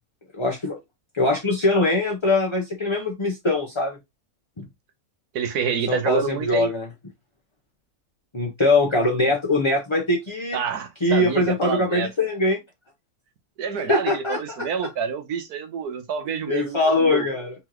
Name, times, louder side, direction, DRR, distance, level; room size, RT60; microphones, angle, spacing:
voice 1, 0.3-0.8 1.1-4.0 4.6-4.7 5.9-6.9 8.3-10.6 11.0-12.6 13.9-14.7 16.5-17.5, left 2 dB, 25° left, 0.8 m, -22 dB
voice 2, 5.3-6.7 10.5-12.1 13.6-17.3, right 6 dB, 85° right, 1.5 m, -28 dB
4.4 x 3.9 x 3.0 m
omnidirectional pair, 1.6 m